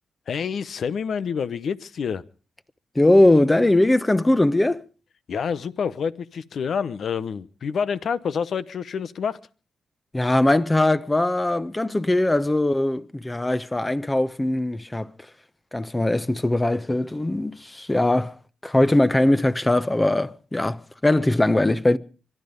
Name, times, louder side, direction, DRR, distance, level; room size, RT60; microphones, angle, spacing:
voice 1, 0.3-2.2 5.3-9.4, left 6 dB, 70° left, 0.9 m, -28 dB
voice 2, 2.9-4.8 10.1-15.1 15.7-18.4 18.6-22.0, left 1 dB, 20° left, 1.1 m, -20 dB
24.5 x 11.0 x 5.3 m
supercardioid pair, 50°, 0 cm